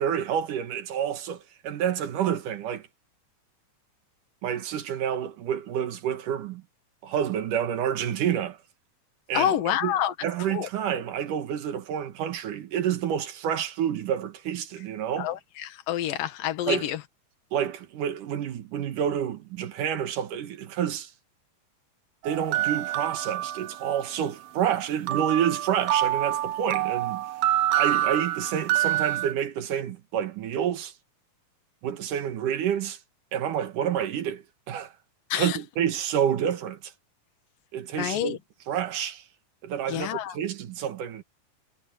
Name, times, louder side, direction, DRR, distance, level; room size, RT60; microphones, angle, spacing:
voice 1, 0.0-2.9 4.4-6.6 7.0-8.6 9.3-9.5 9.8-9.9 10.2-15.3 16.7-16.9 17.5-21.1 22.2-27.2 27.7-30.9 31.8-33.0 33.3-34.9 35.3-36.9 37.7-38.4 38.7-39.2 39.6-41.2, right 9 dB, 70° right, 2.9 m, -28 dB
voice 2, 9.3-10.1 10.5-10.7 15.2-17.0 35.3-35.6 38.0-38.4 39.9-40.4, left 11 dB, 80° left, 3.1 m, -27 dB
sound 1, 22.2-24.1 25.1-29.3, right 13 dB, 90° right, 1.4 m, -27 dB
omnidirectional pair, 3.9 m